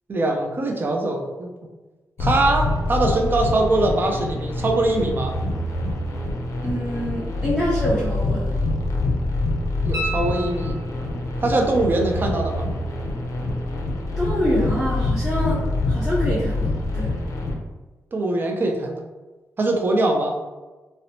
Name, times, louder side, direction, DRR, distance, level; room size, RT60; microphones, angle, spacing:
voice 1, 0.1-1.5 2.2-5.3 9.8-10.7 11.4-12.7 18.1-19.0 19.6-20.4, right 2 dB, 35° right, 2 dB, 0.4 m, -22 dB
sound 1, 2.2-17.5, left 2 dB, 65° left, 0.5 m, -25 dB
voice 2, 6.6-8.5 14.2-15.6 15.9-17.1, equal, 5° right, -9 dB, 0.7 m, -25 dB
sound 2, 9.9-11.3 14.1-14.2, right 1 dB, 55° right, 0.9 m, -32 dB
2.8 x 2.0 x 2.7 m, 1.2 s
cardioid pair, 100°, 6 cm